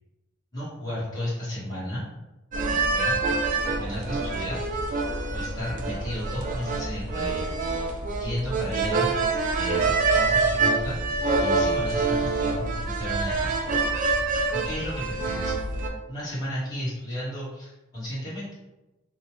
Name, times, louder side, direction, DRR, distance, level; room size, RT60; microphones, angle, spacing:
voice 1, 0.5-2.0 2.9-3.2 3.8-4.6 5.3-7.6 8.2-9.1 9.5-13.7 14.6-15.6 16.1-18.5, equal, 20° left, -11 dB, 1.4 m, -33 dB
sound 1, 2.5-15.9, right 3 dB, 40° right, 0.3 m, -26 dB
2.9 x 2.2 x 3.0 m, 1.0 s
head